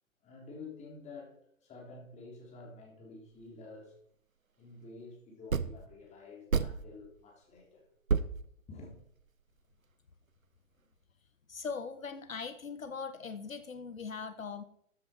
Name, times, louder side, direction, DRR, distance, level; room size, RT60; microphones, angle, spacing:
voice 1, 0.2-3.9 4.6-7.9 8.7-9.0, left 3 dB, 15° left, 3.4 m, -50 dB
sound 1, 3.4-3.5 5.5-5.9 6.5-7.1 7.6-7.7 8.1-9.3, right 5 dB, 85° right, 0.8 m, -31 dB
voice 2, 11.5-14.6, left 5 dB, 75° left, 1.1 m, -40 dB
13.5 x 8.5 x 4.3 m
figure-of-eight pair, 115°, 40 cm